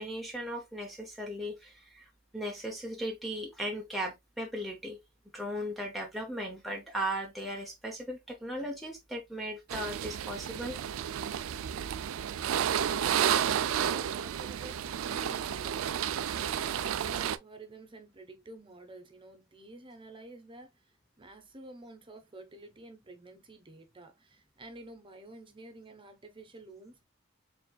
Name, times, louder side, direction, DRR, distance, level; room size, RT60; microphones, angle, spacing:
voice 1, 0.0-5.0 5.3-10.8, equal, ahead, 0.7 m, -37 dB
sound 1, 9.7-17.4, right 9 dB, 90° right, 0.4 m, -31 dB
voice 2, 12.8-27.0, right 2 dB, 25° right, 0.9 m, -50 dB
4.5 x 3.5 x 2.3 m
head